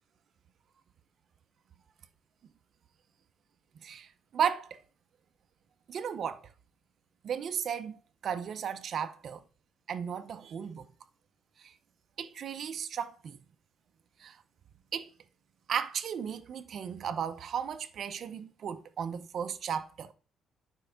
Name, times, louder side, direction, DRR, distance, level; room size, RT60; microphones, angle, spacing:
voice 1, 3.8-4.8 5.9-6.4 7.2-9.4 9.9-10.9 11.6-11.7 12.2-13.4 14.2-14.4 14.9-15.1 15.7-20.1, right 8 dB, 45° right, 0.6 m, -35 dB
9.3 x 4.5 x 5.1 m
cardioid pair, 155°, 0 cm